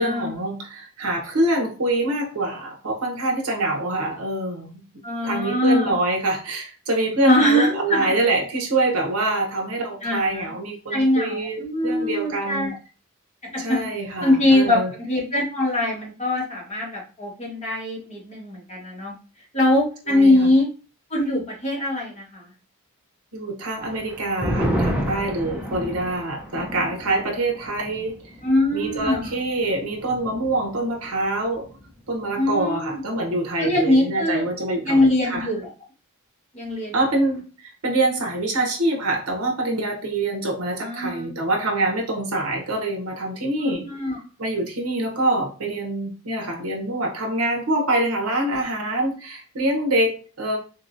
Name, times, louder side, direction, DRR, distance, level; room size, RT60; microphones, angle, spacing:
voice 1, 0.0-4.8 5.2-12.7 13.6-14.9 20.1-20.5 23.3-28.3 28.7-31.7 32.1-35.5 36.9-43.9 44.4-50.6, right 2 dB, 70° right, 3 dB, 0.9 m, -25 dB
voice 2, 5.0-5.9 7.2-8.1 10.0-10.5 10.9-12.7 13.4-13.8 14.2-19.1 19.5-20.7 21.1-22.5 28.4-29.3 32.4-33.0 33.6-34.4 34.8-35.7 36.5-37.0 40.8-41.3 43.6-44.2, left 1 dB, 30° left, -3 dB, 1.3 m, -22 dB
sound 1, 23.8-30.7 31.0-31.1 31.5-32.0, equal, 5° right, 0.5 m, -31 dB
3.7 x 2.9 x 2.5 m, 0.35 s
head